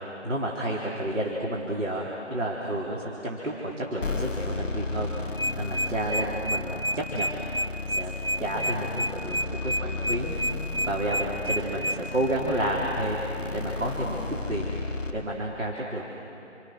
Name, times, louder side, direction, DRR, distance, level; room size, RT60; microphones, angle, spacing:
voice 1, 0.2-7.4 7.9-8.1 8.4-10.4 10.9-13.2 13.5-14.2 14.5-14.7 15.1-16.0, right 1 dB, 85° right, -3 dB, 3.8 m, -30 dB
sound 1, 4.0-15.1, left 3 dB, ahead, 1.0 m, -34 dB
sound 2, 5.1-12.0, right 1 dB, 50° left, 0.5 m, -29 dB
29.0 x 25.0 x 6.3 m, 3.0 s
figure-of-eight pair, 175°, 37 cm